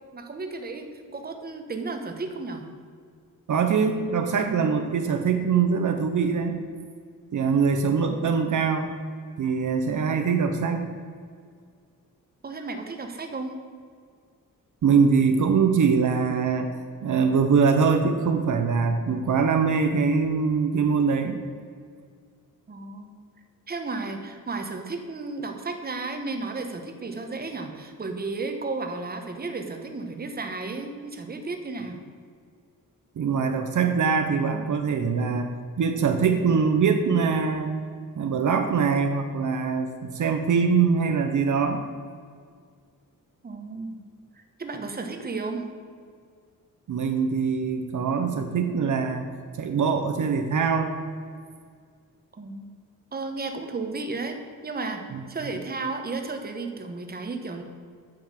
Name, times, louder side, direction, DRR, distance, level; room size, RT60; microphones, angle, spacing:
voice 1, 0.1-2.6 12.4-13.5 22.7-23.1 23.7-32.0 43.4-44.0 44.3-45.7 52.3-52.7 53.1-54.4 54.6-55.0 55.3-57.6, right 3 dB, 30° right, 5 dB, 1.1 m, -33 dB
voice 2, 3.5-6.6 7.3-8.9 9.4-10.9 14.8-16.7 17.0-21.4 33.2-37.8 38.2-41.8 46.9-49.3 49.6-51.0 55.1-55.2, right 5 dB, 60° right, 6 dB, 0.9 m, -23 dB
9.1 x 7.0 x 7.6 m, 2.1 s
wide cardioid pair, 160°, 34 cm